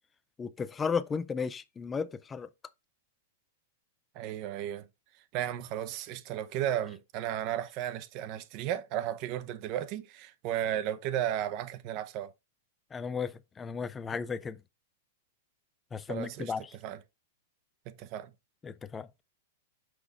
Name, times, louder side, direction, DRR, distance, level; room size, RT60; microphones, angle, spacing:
voice 1, 0.4-2.5 12.9-14.6 15.9-16.7 18.6-19.1, left 5 dB, 15° left, 0.5 m, -34 dB
voice 2, 4.1-4.9 5.3-12.3 16.1-16.5 16.8-17.0 17.9-18.3, right 11 dB, 40° right, 0.8 m, -34 dB
6.1 x 4.8 x 3.8 m
hypercardioid pair, 140°, 0 cm